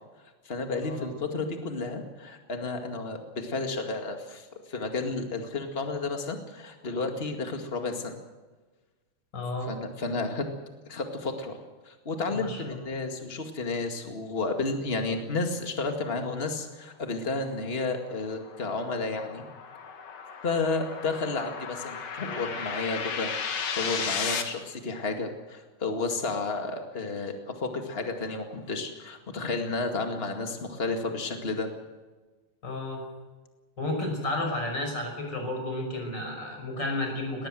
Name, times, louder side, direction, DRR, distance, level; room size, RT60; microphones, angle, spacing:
voice 1, 0.4-8.1 9.7-10.4 10.9-11.6 11.8-19.4 20.4-23.3 23.7-31.7, left 3 dB, 75° left, 4 dB, 0.5 m, -32 dB
voice 2, 9.3-9.7 12.3-12.6 32.6-33.0 33.8-37.5, left 2 dB, 25° left, 3 dB, 5.9 m, -32 dB
sound 1, 17.6-24.4, left 6 dB, 50° left, 2.1 m, -35 dB
19.5 x 19.5 x 7.7 m, 1.2 s
omnidirectional pair, 4.9 m